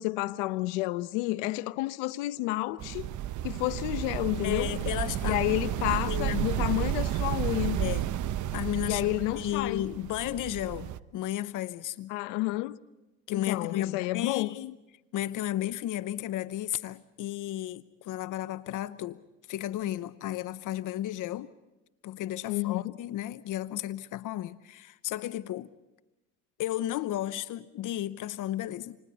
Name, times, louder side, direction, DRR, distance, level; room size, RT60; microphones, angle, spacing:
voice 1, 0.0-3.1 3.4-4.7 5.2-7.8 8.9-9.8 12.1-12.8 13.3-14.5 22.5-22.9, left 19 dB, 85° left, 0.9 m, -30 dB
sound 1, 2.8-11.0, right 11 dB, 55° right, 1.0 m, -32 dB
voice 2, 4.4-5.4 5.9-6.5 7.8-8.1 8.5-9.1 9.3-12.1 13.3-14.8 15.1-19.2 19.5-21.5 22.0-25.7 26.6-29.0, left 13 dB, 60° left, 0.9 m, -33 dB
29.5 x 27.5 x 4.1 m
supercardioid pair, 75°, 35 cm